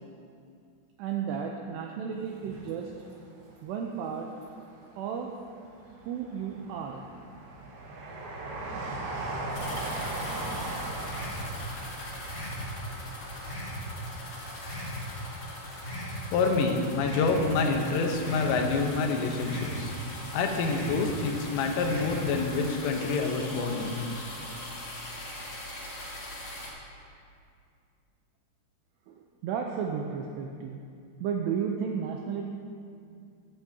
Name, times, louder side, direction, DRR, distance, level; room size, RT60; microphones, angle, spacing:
voice 1, 1.0-2.9 3.6-4.3 5.0-5.3 6.0-7.0 12.4-12.5 29.1-30.8 31.2-32.5, right 7 dB, 85° right, 2 dB, 2.4 m, -33 dB
Train, 2.3-3.5 4.0-4.9 5.5-14.2 14.5-14.6, right 2 dB, 65° right, 3.1 m, -38 dB
sound 1, 9.5-26.7, left 1 dB, 50° left, 1.3 m, -41 dB
sound 2, 11.0-11.5 12.2-12.6 13.4-13.8 14.6-15.0 15.8-16.2 17.0-17.4 18.2-18.6 19.4-19.8 20.6-21.0 21.8-22.2, left 1 dB, 30° left, 1.4 m, -38 dB
voice 2, 16.3-19.9 20.3-24.0, left 4 dB, 85° left, 3 dB, 3.5 m, -27 dB
14.5 x 11.5 x 2.8 m, 2.4 s
omnidirectional pair, 5.6 m